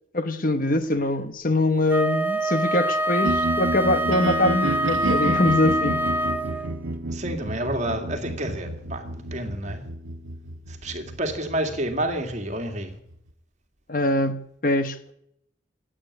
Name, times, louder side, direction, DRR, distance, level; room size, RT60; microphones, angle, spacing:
voice 1, 0.1-6.0 13.9-15.1, left 2 dB, 45° left, 10 dB, 1.1 m, -23 dB
Wind instrument woodwind instrument, 1.9-6.8, right 1 dB, 10° right, 0.8 m, -25 dB
sound 1, 3.2-13.3, right 2 dB, 85° right, 1.0 m, -31 dB
voice 2, 7.1-9.8 10.7-13.0, right 1 dB, 35° right, 5 dB, 2.2 m, -29 dB
16.0 x 8.9 x 9.8 m, 0.74 s
head